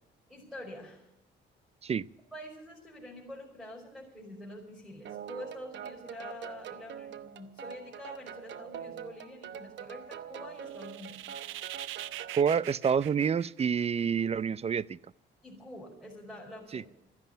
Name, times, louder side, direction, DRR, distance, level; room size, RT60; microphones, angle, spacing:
voice 1, 0.3-1.1 2.3-11.3 15.4-16.9, left 1 dB, ahead, -2 dB, 5.2 m, -46 dB
sound 1, 5.1-12.4, right 8 dB, 65° right, 1.0 m, -44 dB
sound 2, 10.6-14.2, right 15 dB, 85° right, 0.5 m, -43 dB
voice 2, 12.3-15.0 16.7-16.8, right 7 dB, 30° right, 20 dB, 0.5 m, -28 dB
14.5 x 10.5 x 9.0 m, 0.83 s
cardioid pair, 90°, 20 cm